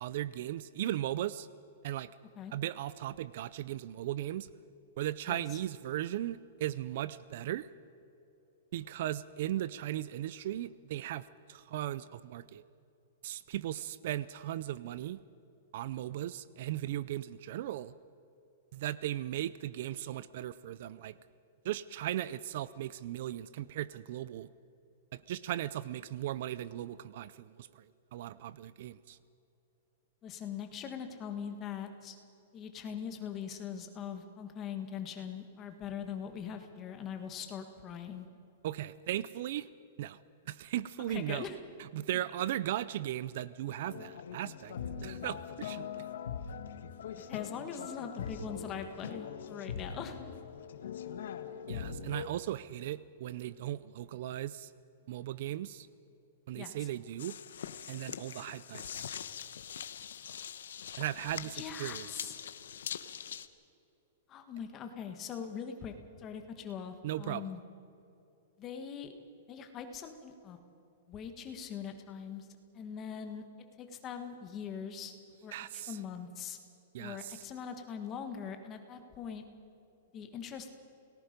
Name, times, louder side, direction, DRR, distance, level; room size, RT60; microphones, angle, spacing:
voice 1, 0.0-1.5 1.8-2.1 2.5-4.5 5.0-7.7 8.7-12.6 13.2-15.2 15.7-17.9 18.7-21.2 21.6-24.5 25.1-27.8 28.1-29.2 38.6-39.7 40.0-40.2 40.5-41.5 41.8-44.8 45.0-46.1 51.7-54.7 55.1-55.9 56.5-57.4 57.9-59.1 61.0-62.3 67.0-67.4 75.5-76.0 76.9-77.4, right 13 dB, 45° right, 18 dB, 0.5 m, -37 dB
voice 2, 30.2-32.2 32.5-38.3 41.1-41.6 47.2-50.2 56.5-56.9 61.5-62.4 64.3-67.6 68.6-69.1 69.5-70.6 71.1-72.5 72.7-73.4 73.8-75.1 75.4-76.6 77.0-79.4 80.1-80.7, left 7 dB, 20° left, 6 dB, 1.4 m, -42 dB
sound 1, 43.7-52.3, left 7 dB, 70° left, 1.4 m, -42 dB
sound 2, 57.2-63.5, left 8 dB, 85° left, 1.0 m, -43 dB
29.5 x 18.5 x 5.2 m, 2.8 s
supercardioid pair, 175°, 0 cm